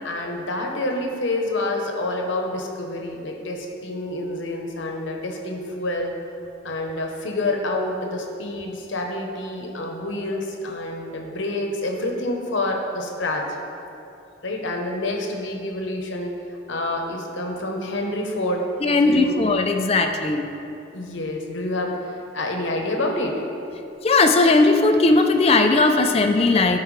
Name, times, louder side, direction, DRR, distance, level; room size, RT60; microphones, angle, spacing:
voice 1, 0.0-6.1 6.6-13.5 14.4-16.3 16.7-19.3 20.9-23.4, left 1 dB, 75° left, 2 dB, 0.9 m, -28 dB
voice 2, 18.8-20.5 24.0-26.8, left 3 dB, 30° left, 5 dB, 0.4 m, -18 dB
12.0 x 4.6 x 3.2 m, 2.7 s
head